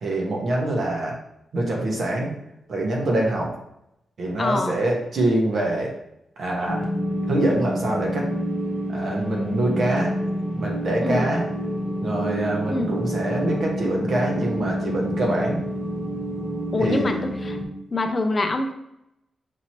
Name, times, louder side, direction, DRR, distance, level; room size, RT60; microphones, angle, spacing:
voice 1, 0.0-1.2 1.5-2.3 2.7-3.5 4.2-5.9 6.4-6.8 7.3-8.3 8.9-10.1 10.5-11.5 12.0-15.6 16.8-17.1, right 1 dB, 55° right, -1 dB, 1.1 m, -24 dB
voice 2, 4.4-4.8 11.0-11.3 12.7-13.0 16.7-17.6 17.9-18.7, left 2 dB, 30° left, 6 dB, 0.4 m, -25 dB
sound 1, 6.6-17.6, equal, 10° right, 1.2 m, -28 dB
5.9 x 2.9 x 2.9 m, 0.82 s
wide cardioid pair, 155°, 0 cm